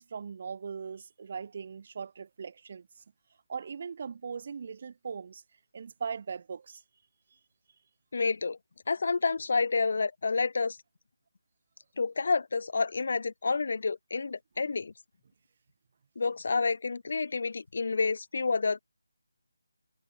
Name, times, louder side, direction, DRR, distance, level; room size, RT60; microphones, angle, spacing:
voice 1, 0.0-2.9 3.5-5.4 5.7-6.8, right 6 dB, 40° right, 3.1 m, -39 dB
voice 2, 8.1-8.6 8.9-10.8 12.0-14.9 16.2-18.8, left 4 dB, 50° left, 2.9 m, -29 dB
figure-of-eight pair, 155°, 0 cm